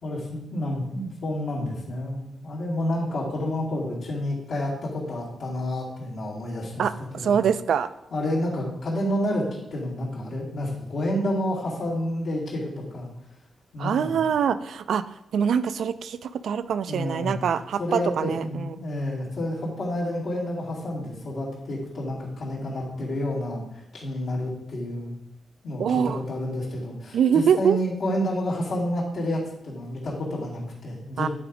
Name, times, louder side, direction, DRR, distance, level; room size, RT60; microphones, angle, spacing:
voice 1, 0.0-6.9 7.1-7.4 8.1-9.5 9.7-13.1 13.7-14.2 16.9-17.4 17.8-25.1 25.6-31.3, left 1 dB, 70° left, -7 dB, 2.4 m, -29 dB
voice 2, 6.8-7.9 13.8-15.0 15.3-18.8 25.8-26.2 27.1-27.8 31.2-31.3, right 7 dB, 75° right, 13 dB, 0.4 m, -24 dB
9.3 x 4.0 x 4.8 m, 0.86 s
cardioid pair, 120°, 0 cm